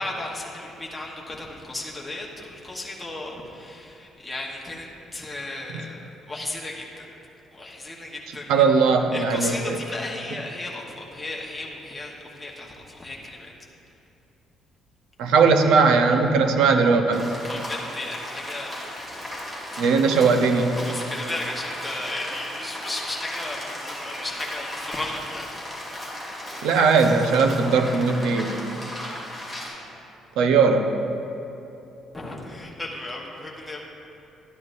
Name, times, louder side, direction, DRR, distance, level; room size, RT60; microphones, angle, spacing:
voice 1, 0.0-6.0 6.3-7.0 7.5-8.5 9.1-13.5 17.5-18.8 19.7-19.8 20.8-25.5 32.1-33.8, left 2 dB, 10° left, -3 dB, 1.1 m, -35 dB
voice 2, 8.5-9.6 15.2-17.3 19.8-20.7 26.6-28.6 30.4-30.9, right 4 dB, 90° right, 6 dB, 0.7 m, -19 dB
Rain, 17.1-29.7, left 1 dB, 15° right, 2.0 m, -36 dB
12.0 x 9.6 x 2.6 m, 2.9 s
cardioid pair, 155°, 0 cm